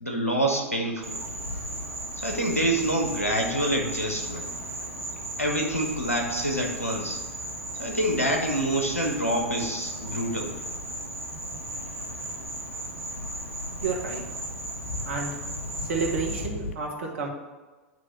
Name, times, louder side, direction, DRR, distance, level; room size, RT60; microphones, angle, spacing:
voice 1, 0.0-1.2 2.2-4.5 5.4-7.2 7.8-10.6, right 1 dB, 90° left, 2 dB, 1.1 m, -27 dB
Insect, 1.0-16.5, right 2 dB, 80° right, 0.9 m, -36 dB
Ocean, 1.3-16.7, left 4 dB, 65° left, 0.6 m, -42 dB
voice 2, 13.8-14.2 15.0-15.3 15.9-17.3, right 4 dB, 60° right, 0 dB, 1.4 m, -30 dB
9.2 x 3.3 x 5.7 m, 1.3 s
figure-of-eight pair, 90°, 7 cm